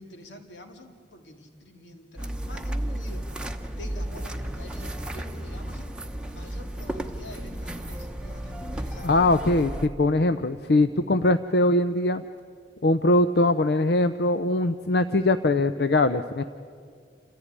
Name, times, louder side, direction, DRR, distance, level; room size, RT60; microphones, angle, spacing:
voice 1, 0.0-3.3 3.8-9.2, left 1 dB, 85° left, 4 dB, 2.6 m, -46 dB
sound 1, 2.2-9.9, right 1 dB, 5° right, 0.9 m, -33 dB
voice 2, 9.0-12.2 12.8-16.4, left 2 dB, 60° left, 10 dB, 0.6 m, -22 dB
28.5 x 14.5 x 9.8 m, 2.2 s
head